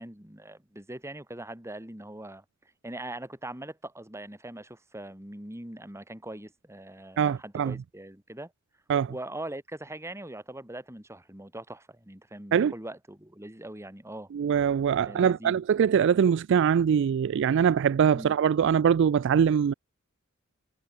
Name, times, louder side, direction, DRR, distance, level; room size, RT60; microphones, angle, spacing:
voice 1, 0.0-2.4 2.8-8.5 9.1-14.3 15.0-15.6 18.1-18.3, right 1 dB, 15° right, 3.2 m, -41 dB
voice 2, 7.2-7.7 8.9-9.1 12.5-12.7 14.3-19.7, right 7 dB, 60° right, 0.3 m, -23 dB
head